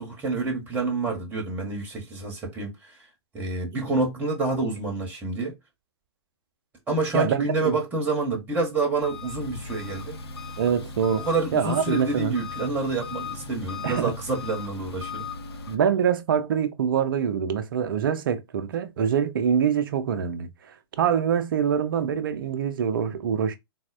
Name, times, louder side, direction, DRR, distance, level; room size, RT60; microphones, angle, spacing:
voice 1, 0.0-3.0 3.3-5.5 6.9-10.2 11.2-15.3, right 3 dB, 10° right, 1.0 m, -28 dB
voice 2, 7.1-7.8 10.6-11.3 11.5-12.4 13.8-14.1 15.7-20.5 21.0-23.6, right 8 dB, 50° right, 0.6 m, -24 dB
Engine, 9.0-15.8, left 4 dB, 65° left, 0.7 m, -37 dB
4.1 x 2.1 x 2.4 m
figure-of-eight pair, 115°, 14 cm